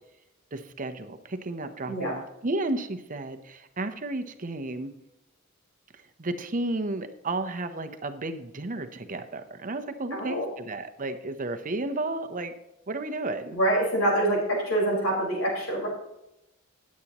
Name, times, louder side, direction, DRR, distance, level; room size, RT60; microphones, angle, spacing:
voice 1, 0.5-4.9 6.2-12.5 12.9-13.6, right 2 dB, 40° right, 8 dB, 0.8 m, -32 dB
voice 2, 10.1-10.5 13.5-15.9, right 1 dB, 85° left, -2 dB, 4.8 m, -25 dB
18.5 x 8.4 x 3.0 m, 0.89 s
head